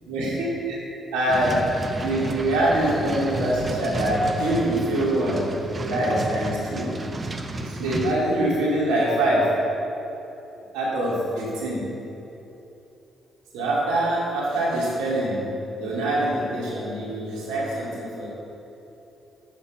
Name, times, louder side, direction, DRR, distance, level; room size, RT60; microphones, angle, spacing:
voice 1, 0.1-0.8 1.1-1.7 2.0-5.5 5.8-7.0 7.6-9.6 10.7-11.9 13.5-15.5 15.8-18.3, right 1 dB, 85° right, -5 dB, 2.2 m, -24 dB
sound 1, 1.3-8.1, right 2 dB, 35° right, 0.9 m, -32 dB
8.8 x 5.9 x 5.7 m, 3.0 s
hypercardioid pair, 50°, 0 cm